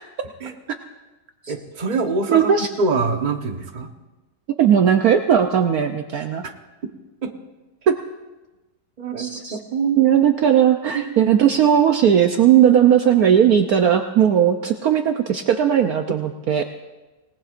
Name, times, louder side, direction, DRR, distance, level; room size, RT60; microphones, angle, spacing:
voice 1, 1.5-3.9 6.8-6.9 7.2-7.3 9.0-10.0 10.9-11.3, right 4 dB, 30° right, 4 dB, 1.1 m, -25 dB
voice 2, 2.3-2.7 4.6-6.4 7.9-8.0 9.2-9.6 10.0-16.6, right 9 dB, 65° right, 6 dB, 1.1 m, -17 dB
27.0 x 18.5 x 2.5 m, 1.1 s
omnidirectional pair, 1.9 m